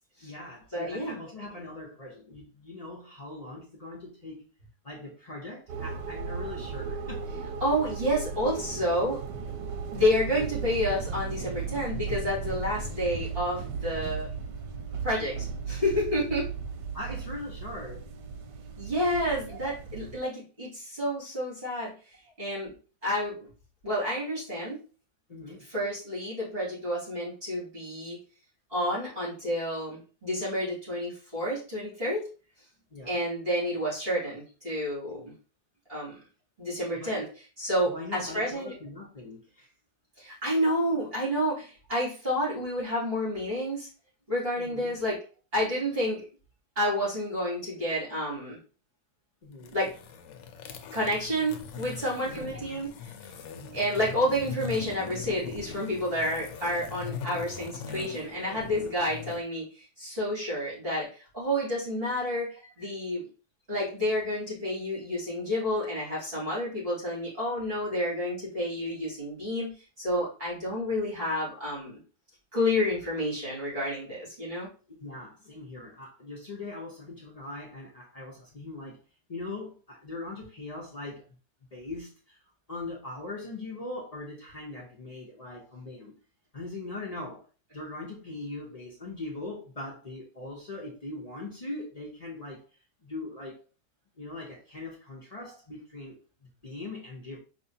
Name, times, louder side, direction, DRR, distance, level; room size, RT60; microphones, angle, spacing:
voice 1, 0.2-4.5 4.8-7.3 16.9-18.1 19.5-19.8 22.3-22.4 25.3-25.7 32.9-33.2 36.9-37.3 37.8-39.7 44.6-45.0 49.4-49.7 52.2-52.8 53.5-53.8 62.8-62.9 75.0-79.0 79.3-81.3 81.7-82.4 82.7-86.2 86.5-87.4 87.7-92.6 93.0-93.6 94.2-97.4, left 2 dB, 70° left, 0.3 m, -41 dB
voice 2, 0.7-1.2 7.6-9.2 9.9-14.3 15.0-16.5 18.8-21.9 22.4-22.7 23.0-23.4 23.8-24.8 25.5-28.2 28.7-32.3 33.1-35.3 35.9-36.2 36.6-37.3 37.6-38.7 40.2-43.9 44.3-45.2 45.5-46.2 46.8-48.6 49.7-49.9 50.9-52.9 53.7-62.5 62.8-63.2 63.7-69.7 70.0-72.0 72.5-74.7, equal, 35° right, 2.6 m, -29 dB
sound 1, 5.7-20.2, right 5 dB, 85° right, 1.2 m, -36 dB
sound 2, 49.5-59.4, left 6 dB, 90° left, 1.3 m, -41 dB
4.3 x 3.1 x 2.7 m
omnidirectional pair, 1.8 m